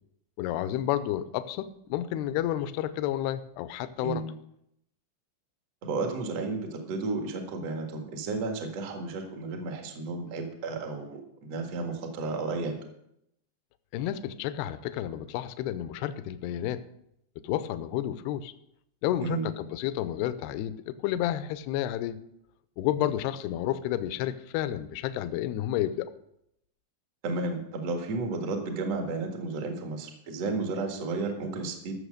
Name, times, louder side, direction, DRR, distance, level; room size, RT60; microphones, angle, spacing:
voice 1, 0.4-4.2 13.9-16.8 17.4-18.5 19.0-22.2 22.8-26.1, left 12 dB, 80° left, 12 dB, 2.5 m, -31 dB
voice 2, 4.0-4.4 5.8-12.8 19.2-19.5 23.0-23.1 27.2-31.9, right 3 dB, 50° right, 3 dB, 2.1 m, -33 dB
14.5 x 6.9 x 6.5 m, 0.77 s
omnidirectional pair, 5.1 m